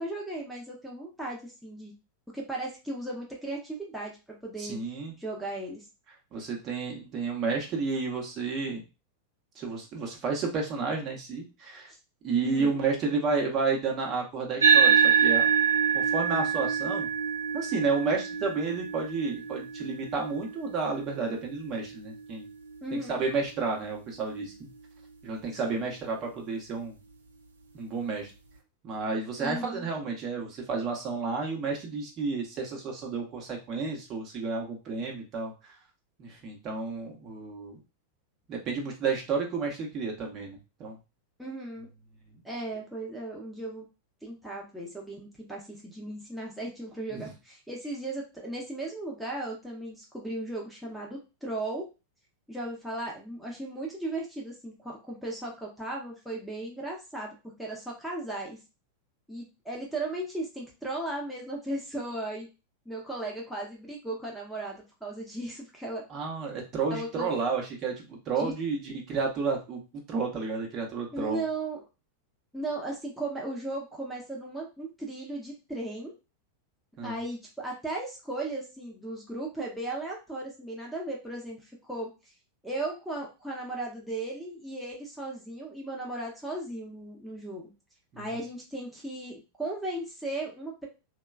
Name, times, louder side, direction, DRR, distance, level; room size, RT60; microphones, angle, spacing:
voice 1, 0.0-1.9 2.3-4.1 4.4-4.8 5.2-5.9 11.9-12.0 12.4-12.8 22.8-23.2 25.6-25.9 29.4-29.9 41.4-41.9 42.4-43.8 44.2-51.9 52.5-58.6 59.3-62.5 62.9-66.0 66.9-67.3 68.4-68.5 71.1-71.8 72.5-76.1 77.0-82.1 82.6-87.7 88.2-90.9, right 2 dB, ahead, -4 dB, 0.7 m, -36 dB
voice 2, 4.6-5.1 6.3-8.8 9.6-11.9 12.2-15.5 15.9-17.1 17.5-22.5 22.9-24.7 25.2-27.0 27.7-28.3 28.8-35.7 36.2-37.8 38.5-41.0 47.1-47.3 66.1-71.5 77.0-77.1 88.1-88.3, right 4 dB, 35° right, 0 dB, 0.8 m, -31 dB
sound 1, 14.6-23.3, right 7 dB, 70° right, 0.4 m, -26 dB
3.0 x 2.2 x 2.3 m, 0.29 s
figure-of-eight pair, 90°, 0 cm